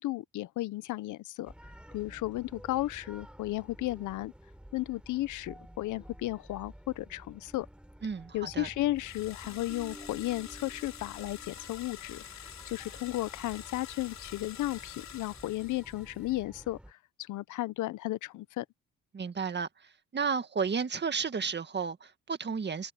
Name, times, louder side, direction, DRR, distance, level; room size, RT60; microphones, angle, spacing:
voice 1, 0.0-1.5 1.9-4.3 4.7-7.7 8.3-12.2 12.7-16.8 17.3-18.6, left 17 dB, 80° left, 0.7 m, -34 dB
sound 1, 1.5-16.9, equal, 5° right, 4.3 m, -51 dB
voice 2, 8.0-8.7 19.1-19.7 20.1-22.9, right 5 dB, 35° right, 1.8 m, -32 dB
sound 2, 9.0-16.3, left 10 dB, 65° left, 3.3 m, -47 dB
cardioid pair, 90°, 30 cm